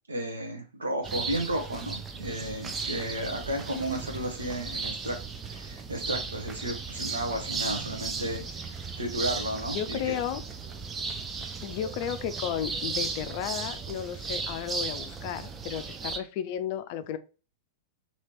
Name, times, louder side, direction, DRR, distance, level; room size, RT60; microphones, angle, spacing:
voice 1, 0.1-5.2 5.4-10.1, right 1 dB, 75° right, 3 dB, 1.0 m, -33 dB
sound 1, 1.0-16.2, right 4 dB, 20° right, 0.4 m, -36 dB
voice 2, 9.7-10.4 11.6-17.2, left 10 dB, 45° left, 12 dB, 0.4 m, -33 dB
2.9 x 2.9 x 4.4 m, 0.35 s
figure-of-eight pair, 95°, 0 cm